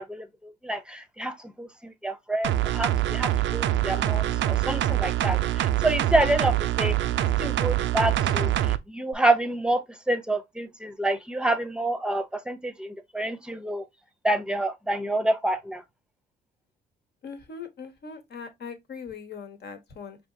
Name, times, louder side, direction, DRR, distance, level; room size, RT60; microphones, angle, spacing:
voice 1, 0.0-7.0 7.4-13.8 14.2-15.8, right 1 dB, 5° right, 0.7 m, -28 dB
sound 1, 2.4-8.8 9.1-9.2, right 13 dB, 70° right, 0.4 m, -25 dB
voice 2, 17.2-20.2, left 5 dB, 55° left, 1.1 m, -40 dB
5.2 x 2.9 x 2.7 m
cardioid pair, 90°, 20 cm